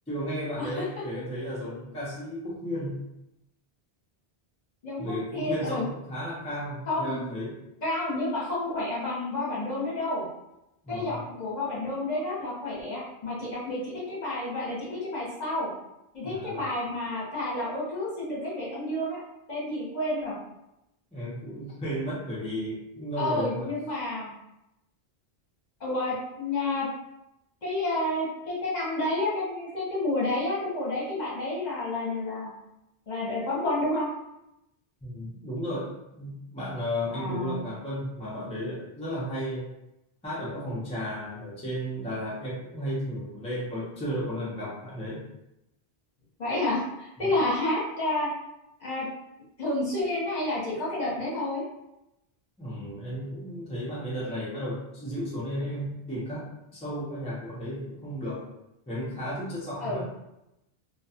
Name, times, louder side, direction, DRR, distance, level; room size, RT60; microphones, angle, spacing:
voice 1, 0.1-3.0 5.0-7.5 10.8-11.2 16.2-16.7 21.1-23.7 35.0-39.7 40.2-45.2 47.2-47.3 52.6-58.4 58.9-60.0, equal, 10° left, -8 dB, 0.5 m, -34 dB
voice 2, 4.8-5.8 6.9-7.2 7.8-10.2 10.9-15.7 16.1-19.2 19.5-20.4 23.2-24.3 25.8-26.9 27.6-32.5 33.1-34.1 37.1-37.6 46.4-48.3 48.8-49.1 49.6-51.6 59.8-60.0, left 2 dB, 45° left, -7 dB, 0.9 m, -30 dB
2.2 x 2.2 x 2.7 m, 0.88 s
omnidirectional pair, 1.1 m